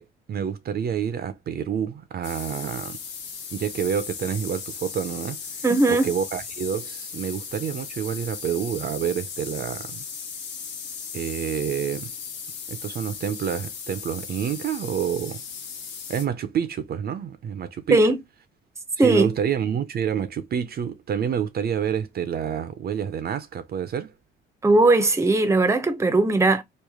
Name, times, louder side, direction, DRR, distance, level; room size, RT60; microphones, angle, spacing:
voice 1, 0.0-3.0 3.5-5.4 5.9-10.0 11.1-12.1 12.7-15.4 16.1-18.0 19.0-24.1, right 8 dB, 50° right, 0.6 m, -28 dB
sound 1, 2.2-16.3, left 6 dB, 70° left, 1.1 m, -37 dB
voice 2, 5.6-6.1 17.9-18.2 19.0-19.3 24.6-26.6, right 2 dB, 15° right, 0.7 m, -18 dB
3.2 x 2.4 x 3.5 m
cardioid pair, 90°, 20 cm